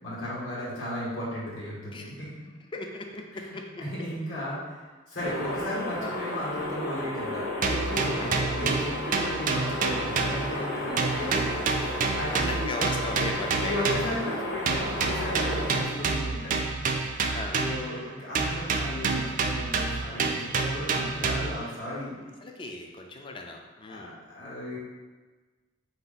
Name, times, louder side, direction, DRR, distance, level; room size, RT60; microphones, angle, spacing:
voice 1, 0.0-2.3 3.3-3.5 3.8-12.8 13.6-16.6 17.0-17.1 17.6-22.4 23.9-24.8, left 1 dB, 80° left, -7 dB, 1.4 m, -35 dB
voice 2, 2.7-3.7 6.0-6.2 8.2-8.3 9.1-9.2 12.3-14.0 17.3-17.6 22.4-24.1, left 2 dB, 25° left, 2 dB, 0.4 m, -37 dB
sound 1, 5.2-15.8, left 1 dB, 60° left, 1.1 m, -33 dB
sound 2, 7.6-10.7 11.0-14.2 14.7-18.0 18.3-21.7, right 4 dB, 45° right, 0.4 m, -28 dB
4.3 x 2.8 x 3.9 m, 1.3 s
head